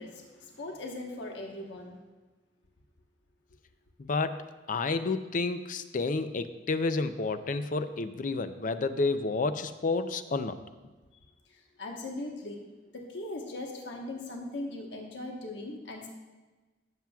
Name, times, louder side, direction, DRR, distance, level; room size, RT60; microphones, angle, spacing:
voice 1, 0.0-2.0 11.5-12.6 12.9-16.1, left 2 dB, 70° left, 1 dB, 1.2 m, -39 dB
voice 2, 4.0-10.6, left 3 dB, 45° left, 10 dB, 0.5 m, -30 dB
16.0 x 7.5 x 2.3 m, 1.3 s
head